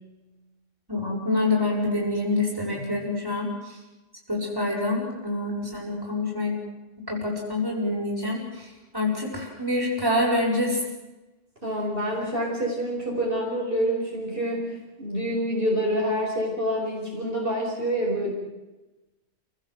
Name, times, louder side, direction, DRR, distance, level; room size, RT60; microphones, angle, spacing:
voice 1, 0.9-3.8 4.3-6.5 7.1-10.8, left 2 dB, 15° right, -2 dB, 6.6 m, -26 dB
voice 2, 11.6-18.3, equal, 45° right, -3 dB, 5.2 m, -27 dB
29.0 x 17.0 x 7.9 m, 1.1 s
omnidirectional pair, 1.3 m